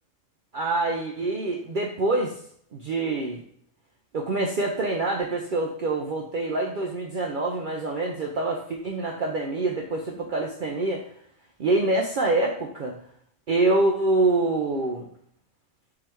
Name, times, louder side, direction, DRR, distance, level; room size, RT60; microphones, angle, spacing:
voice 1, 0.5-2.4 2.7-3.4 4.1-11.0 11.6-13.0 13.5-15.1, right 2 dB, 65° right, 1 dB, 0.5 m, -25 dB
3.8 x 3.1 x 4.5 m, 0.63 s
omnidirectional pair, 1.5 m